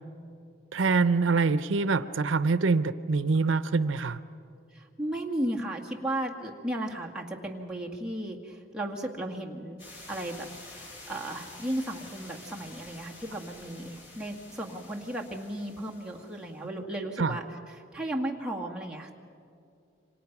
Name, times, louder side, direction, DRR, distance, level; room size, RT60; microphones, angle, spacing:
voice 1, 0.7-4.2 17.2-17.4, right 4 dB, 80° right, 13 dB, 0.6 m, -25 dB
voice 2, 4.7-9.8 10.1-19.1, right 1 dB, 5° right, -2 dB, 1.9 m, -35 dB
sound 1, 9.8-16.5, left 2 dB, 70° left, 7.6 m, -49 dB
28.0 x 25.5 x 6.0 m, 2.5 s
head